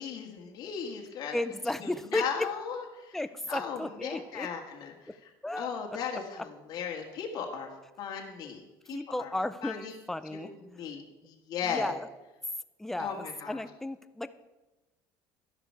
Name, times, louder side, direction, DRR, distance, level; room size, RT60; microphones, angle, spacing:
voice 1, 0.0-1.4 1.8-3.2 3.5-5.3 5.5-7.7 8.0-8.6 8.9-9.3 9.6-10.0 10.3-11.9 13.0-13.6, left 7 dB, 45° left, 1 dB, 1.7 m, -37 dB
voice 2, 1.3-2.5 3.1-4.5 5.1-5.2 5.4-5.7 6.4-6.5 8.9-10.5 11.7-12.1 12.8-14.3, left 1 dB, 5° left, 13 dB, 0.4 m, -34 dB
12.5 x 11.0 x 4.6 m, 1.1 s
cardioid pair, 165°, 10 cm